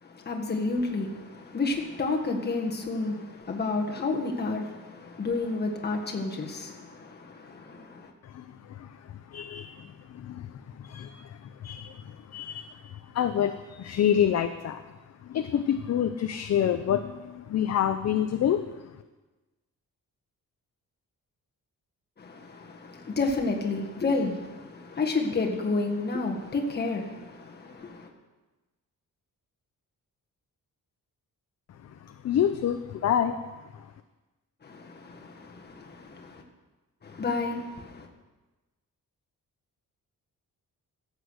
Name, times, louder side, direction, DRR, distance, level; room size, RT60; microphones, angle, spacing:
voice 1, 0.0-8.1 22.2-28.1 34.6-36.4 37.0-38.1, left 3 dB, 30° left, 1.6 m, -31 dB
voice 2, 8.2-12.8 13.1-14.8 15.2-18.7 32.0-33.4, left 9 dB, 50° left, 0.6 m, -28 dB
14.0 x 8.3 x 6.5 m
wide cardioid pair, 170°, 33 cm